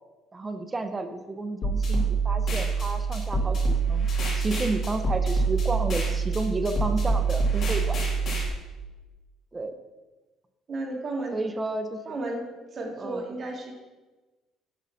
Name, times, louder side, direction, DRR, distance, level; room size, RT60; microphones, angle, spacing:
voice 1, 0.3-4.1 4.3-8.0 9.5-9.7 11.3-12.0 13.0-13.2, right 2 dB, 20° right, 8 dB, 0.7 m, -31 dB
sound 1, 1.6-8.5, right 4 dB, 45° left, 2.3 m, -25 dB
voice 2, 10.7-11.4 12.1-12.4 12.7-13.7, right 2 dB, 35° right, 0 dB, 1.9 m, -33 dB
10.0 x 3.9 x 5.6 m, 1.2 s
cardioid pair, 130°, 0 cm